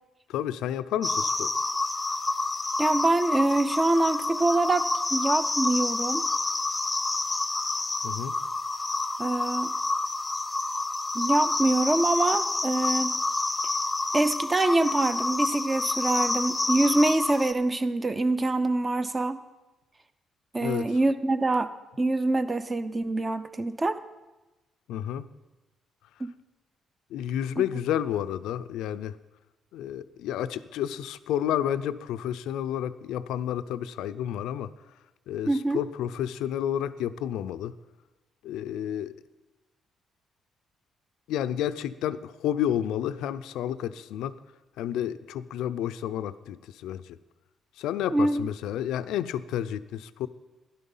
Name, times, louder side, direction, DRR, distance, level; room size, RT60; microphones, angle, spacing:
voice 1, 0.3-1.5 8.0-8.4 20.6-21.0 24.9-25.3 27.1-29.2 29.7-34.7 35.3-37.7 38.4-39.1 41.3-44.4 44.8-47.2 47.8-50.3, left 10 dB, 90° left, 13 dB, 0.5 m, -30 dB
sound 1, 1.0-17.5, left 2 dB, 20° left, 0.8 m, -28 dB
voice 2, 2.8-6.3 9.2-9.7 11.1-13.2 14.1-19.4 20.5-21.7 22.0-24.0 26.2-26.3 35.5-35.8 48.1-48.4, right 2 dB, 25° right, 11 dB, 0.7 m, -25 dB
12.5 x 11.0 x 5.5 m, 1.1 s
cardioid pair, 90°, 0 cm